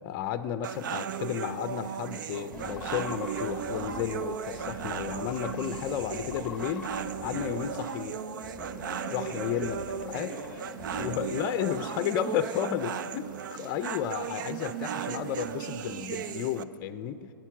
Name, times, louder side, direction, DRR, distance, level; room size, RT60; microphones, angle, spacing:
voice 1, 0.0-6.9 7.2-8.2 9.1-9.8 10.1-10.3 11.0-17.3, left 10 dB, 30° left, 11 dB, 0.6 m, -33 dB
sound 1, 0.6-16.6, right 8 dB, 60° right, 0.6 m, -36 dB
sound 2, 2.5-12.0, left 4 dB, 10° left, 1.3 m, -43 dB
voice 2, 9.3-11.4 11.8-12.6, right 1 dB, 30° right, -2 dB, 2.2 m, -48 dB
20.0 x 9.3 x 6.0 m, 2.9 s
hypercardioid pair, 135°, 12 cm